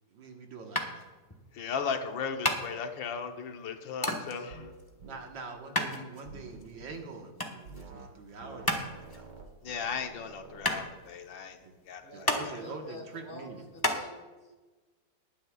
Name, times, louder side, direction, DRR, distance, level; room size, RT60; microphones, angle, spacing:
voice 1, 0.1-1.1 5.0-9.3 11.6-11.8 12.1-13.6, right 4 dB, 85° right, 2 dB, 2.2 m, -44 dB
sound 1, 0.7-14.0, left 1 dB, 15° left, 1.0 m, -35 dB
voice 2, 1.5-4.7 9.6-11.6 11.9-12.6, left 6 dB, 85° left, 5 dB, 1.8 m, -36 dB
sound 2, 4.5-4.7 5.0-5.2 6.3-7.0 7.7-8.1 8.4-10.9, right 3 dB, 70° right, 2.0 m, -49 dB
voice 3, 12.0-14.6, left 1 dB, 35° left, 1 dB, 2.3 m, -48 dB
19.5 x 9.8 x 2.4 m, 1.2 s
omnidirectional pair, 2.0 m